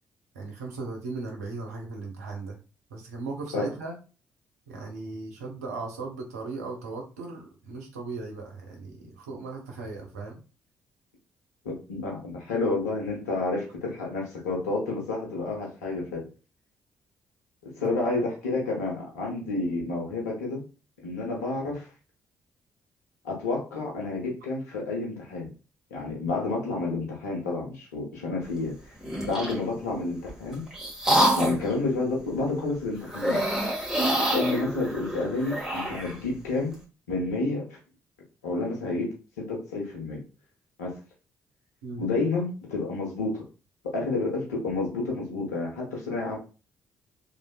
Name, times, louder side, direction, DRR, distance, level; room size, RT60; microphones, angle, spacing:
voice 1, 0.3-2.6 2.9-4.0 4.7-10.4 17.8-17.9 41.8-42.0, right 3 dB, 80° right, 1 dB, 0.6 m, -37 dB
voice 2, 11.6-16.2 17.6-20.6 21.0-21.9 23.2-25.5 25.9-28.7 29.2-30.6 31.4-33.4 34.3-36.8 37.1-37.7 38.4-40.2 40.8-41.0 42.0-43.4 43.8-46.4, left 3 dB, 80° left, -2 dB, 0.8 m, -30 dB
sound 1, 29.0-29.6 30.3-31.7 33.1-36.1, right 1 dB, 5° right, 1.6 m, -26 dB
3.2 x 2.4 x 2.3 m, 0.33 s
figure-of-eight pair, 40°, 8 cm